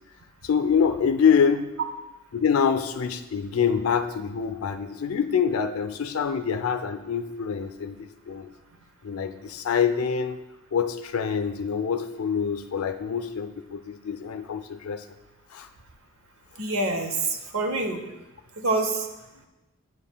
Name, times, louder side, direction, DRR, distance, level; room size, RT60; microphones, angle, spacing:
voice 1, 0.4-1.7 2.3-8.5 9.0-10.4 10.7-15.0 15.5-15.7, left 6 dB, 80° left, 8 dB, 0.5 m, -25 dB
voice 2, 16.6-18.0 18.6-19.1, right 2 dB, 75° right, 5 dB, 0.8 m, -26 dB
9.3 x 7.3 x 2.2 m, 1.0 s
head